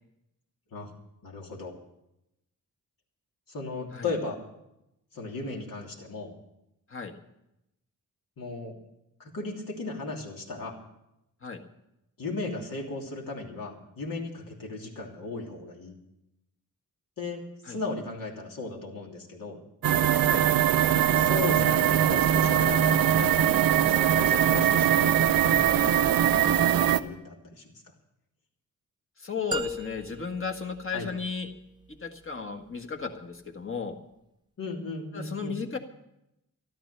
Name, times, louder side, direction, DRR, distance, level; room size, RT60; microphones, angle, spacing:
voice 1, 1.2-1.8 3.5-4.4 5.1-6.3 8.4-8.8 9.2-10.8 12.2-15.9 17.2-19.6 21.0-23.5 23.9-27.7 30.9-31.1 34.6-35.6, left 3 dB, 70° left, 0 dB, 3.1 m, -36 dB
sound 1, 19.8-27.0, right 10 dB, 80° right, 0.7 m, -22 dB
voice 2, 29.2-31.5 31.9-34.0 35.1-35.8, left 5 dB, 35° left, 3 dB, 1.7 m, -35 dB
sound 2, 29.5-31.6, equal, 15° right, 0.6 m, -37 dB
13.5 x 12.5 x 6.7 m, 0.85 s
wide cardioid pair, 95°, 35 cm